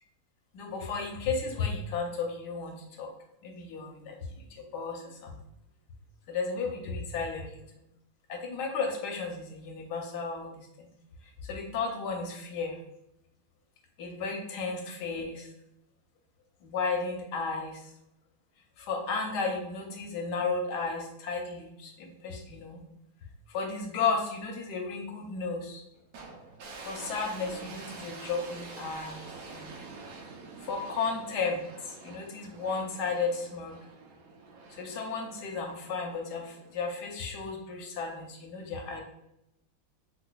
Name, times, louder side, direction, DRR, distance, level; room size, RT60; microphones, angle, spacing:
voice 1, 0.5-3.1 3.4-5.4 6.3-7.8 8.3-10.5 10.8-10.9 11.4-12.8 14.0-15.5 16.6-17.9 18.8-22.8 23.5-25.8 26.8-29.3 29.5-29.8 30.6-33.8 34.8-39.0, left 4 dB, 70° left, 1 dB, 1.1 m, -34 dB
sound 1, 26.1-37.4, right 4 dB, 75° right, 0.8 m, -47 dB
4.8 x 2.2 x 2.2 m, 0.81 s
omnidirectional pair, 2.2 m